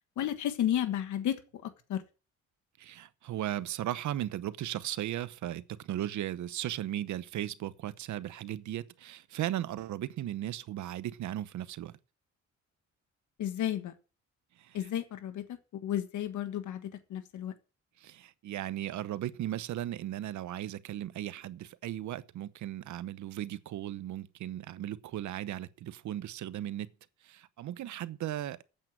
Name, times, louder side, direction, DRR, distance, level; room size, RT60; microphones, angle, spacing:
voice 1, 0.2-2.0 13.4-13.9 14.7-17.5, left 11 dB, 75° left, 1.5 m, -33 dB
voice 2, 2.8-11.9 14.6-14.9 18.0-26.9 27.2-28.6, right 12 dB, 70° right, 0.9 m, -36 dB
8.8 x 7.6 x 8.9 m
cardioid pair, 90°, 30 cm